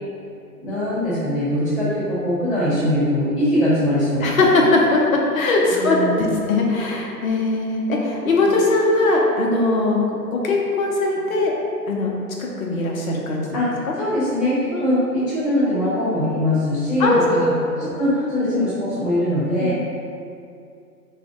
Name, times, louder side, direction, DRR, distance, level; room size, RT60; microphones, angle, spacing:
voice 1, 0.6-4.3 5.8-6.3 13.5-13.7 14.0-17.5 17.8-19.7, left 1 dB, 10° left, -15 dB, 0.5 m, -21 dB
voice 2, 4.2-11.5 11.9-12.1 12.4-13.4 14.7-14.9 17.0-17.4 17.8-17.9 18.2-18.3 19.6-19.7, left 2 dB, 55° left, -1 dB, 0.8 m, -20 dB
4.8 x 2.5 x 3.6 m, 2.5 s
figure-of-eight pair, 130°, 50 cm